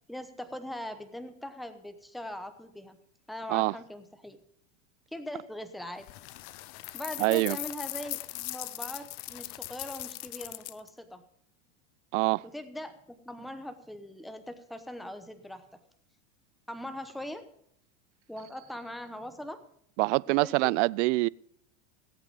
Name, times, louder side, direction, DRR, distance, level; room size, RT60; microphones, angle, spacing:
voice 1, 0.1-3.0 3.3-4.4 5.1-6.1 6.9-11.2 12.4-15.6 16.7-17.4 18.3-19.6 20.3-20.7, left 1 dB, ahead, 0.9 m, -41 dB
sound 1, 6.0-10.9, left 19 dB, 45° left, 0.7 m, -39 dB
voice 2, 7.2-7.6 12.1-12.4 20.0-21.3, right 23 dB, 65° right, 0.5 m, -25 dB
18.0 x 8.4 x 5.3 m
supercardioid pair, 125°, 39 cm